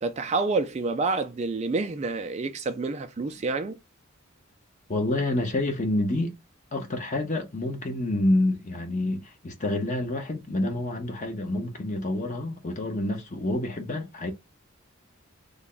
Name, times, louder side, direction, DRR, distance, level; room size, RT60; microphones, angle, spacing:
voice 1, 0.0-3.8, right 3 dB, 30° right, 0.3 m, -28 dB
voice 2, 4.9-6.3 6.7-14.3, left 1 dB, 35° left, 0.8 m, -28 dB
3.3 x 2.2 x 3.8 m
head